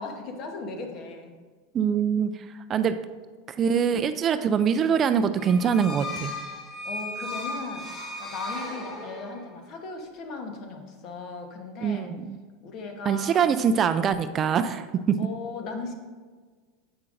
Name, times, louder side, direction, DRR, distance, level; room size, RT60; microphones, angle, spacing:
voice 1, 0.0-1.3 2.7-2.9 6.8-7.9 8.2-12.1 12.6-13.6 15.2-15.9, left 3 dB, 50° left, 4 dB, 1.0 m, -37 dB
voice 2, 1.7-2.3 2.7-3.0 3.6-6.3 11.8-12.4 13.1-14.9, right 7 dB, 35° right, 11 dB, 0.3 m, -23 dB
sound 1, 5.4-9.5, left 2 dB, 25° left, 1.8 m, -36 dB
7.8 x 5.7 x 2.5 m, 1.5 s
hypercardioid pair, 105°, 0 cm